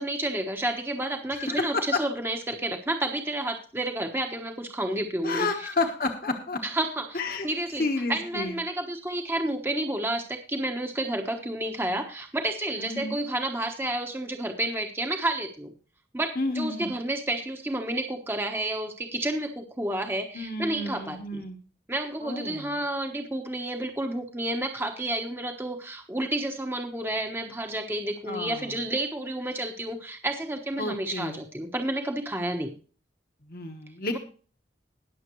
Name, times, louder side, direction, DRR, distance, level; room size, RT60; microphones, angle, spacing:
voice 1, 0.0-5.5 6.6-15.7 16.1-21.4 21.9-32.7, right 1 dB, 15° right, 4 dB, 1.1 m, -30 dB
voice 2, 1.3-1.9 5.2-6.6 7.1-7.5 7.8-8.6 12.8-13.2 16.3-16.9 20.3-21.6 22.2-22.7 28.2-28.8 30.8-31.4 33.5-34.2, left 2 dB, 50° left, 4 dB, 1.3 m, -31 dB
20.5 x 7.3 x 3.1 m, 0.39 s
head